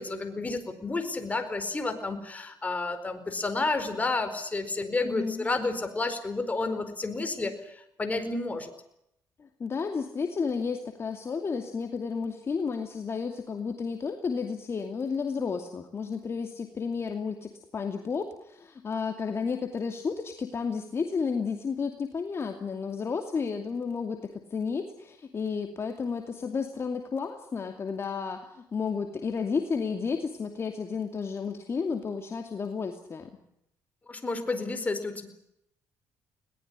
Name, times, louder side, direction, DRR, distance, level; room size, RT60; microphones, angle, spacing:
voice 1, 0.0-8.7 34.1-35.3, left 3 dB, 20° left, 8 dB, 4.7 m, -31 dB
voice 2, 5.0-5.5 9.4-33.3, left 5 dB, 40° left, 4 dB, 2.6 m, -32 dB
21.5 x 19.0 x 9.7 m, 0.80 s
cardioid pair, 100°, 7 cm